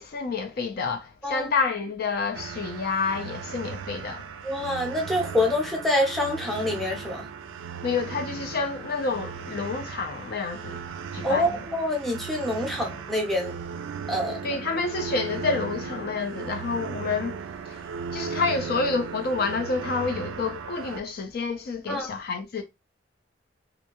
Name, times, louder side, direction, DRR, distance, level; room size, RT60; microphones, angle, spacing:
voice 1, 0.0-4.3 7.8-10.8 11.1-11.6 14.4-17.4 17.7-17.8 18.1-22.6, left 4 dB, 55° left, 0.4 m, -29 dB
sound 1, 2.3-21.0, right 6 dB, 85° right, 0.3 m, -37 dB
voice 2, 4.4-7.3 11.2-13.6 14.1-14.4 21.9-22.1, left 1 dB, ahead, 0.6 m, -26 dB
2.5 x 2.2 x 2.9 m
head